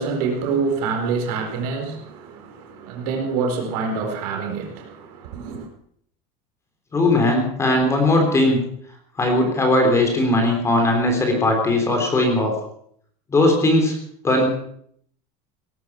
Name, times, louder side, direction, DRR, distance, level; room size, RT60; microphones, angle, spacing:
voice 1, 0.0-5.7, right 5 dB, 85° right, 3 dB, 4.3 m, -26 dB
voice 2, 6.9-8.6 9.2-12.5 13.3-13.9 14.2-14.5, left 1 dB, 15° left, 3 dB, 3.6 m, -18 dB
18.0 x 13.0 x 6.0 m, 0.67 s
cardioid pair, 180°, 19 cm